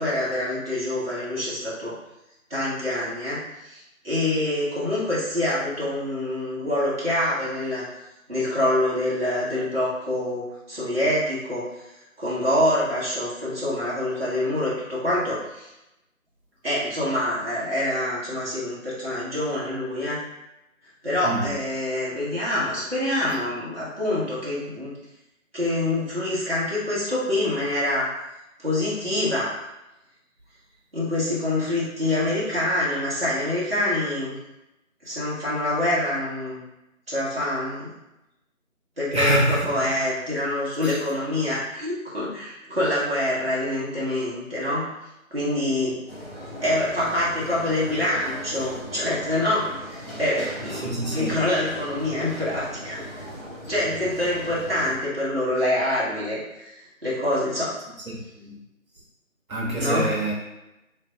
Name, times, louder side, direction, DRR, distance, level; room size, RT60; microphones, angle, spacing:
voice 1, 0.0-1.9 2.5-7.8 8.3-11.7 12.2-15.7 16.6-20.2 21.0-24.9 25.5-28.1 28.6-29.6 30.9-34.4 35.0-36.6 37.1-37.9 39.0-44.9 45.3-46.0 46.6-50.9 51.1-53.0 53.7-57.8 59.8-60.1, left 1 dB, 45° right, -8 dB, 1.1 m, -26 dB
voice 2, 21.2-21.6 39.1-39.8 40.8-41.0 45.9-46.0 50.7-51.4 58.1-58.6 59.5-60.3, right 1 dB, 85° right, -3 dB, 1.1 m, -26 dB
sound 1, 46.1-55.0, equal, 45° left, 0.9 m, -38 dB
3.3 x 2.3 x 3.4 m, 0.93 s
figure-of-eight pair, 175°, 41 cm